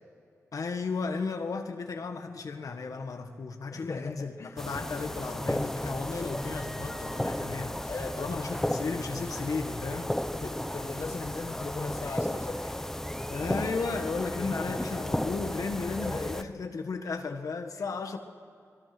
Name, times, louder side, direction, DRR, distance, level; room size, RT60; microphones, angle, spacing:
voice 1, 0.5-10.1 13.3-18.2, left 4 dB, 75° left, 5 dB, 1.6 m, -34 dB
voice 2, 3.7-4.6 7.9-8.7 10.3-12.9 16.0-16.3 16.6-16.7, left 3 dB, 55° left, 4 dB, 1.3 m, -38 dB
sound 1, 4.6-16.4, left 1 dB, 5° left, 0.8 m, -34 dB
25.0 x 22.0 x 6.1 m, 2.5 s
wide cardioid pair, 85°, 6 cm